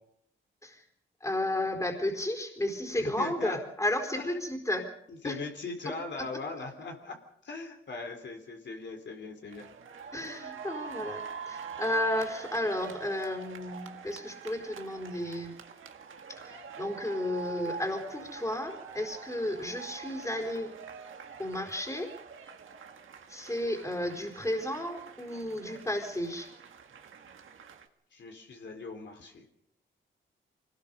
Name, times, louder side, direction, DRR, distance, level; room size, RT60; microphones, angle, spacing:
voice 1, 1.2-4.9 5.2-5.4 6.2-6.3 6.6-6.7 10.1-15.5 16.4-20.7 21.4-22.1 23.3-26.5, left 1 dB, 15° left, 3 dB, 4.3 m, -33 dB
voice 2, 3.0-3.6 4.2-4.4 5.1-7.2 7.4-9.6 28.1-29.5, left 3 dB, 60° left, 3 dB, 3.6 m, -40 dB
sound 1, 9.5-27.9, right 5 dB, 75° right, 2.0 m, -45 dB
25.5 x 19.5 x 5.4 m, 0.74 s
wide cardioid pair, 105°, 21 cm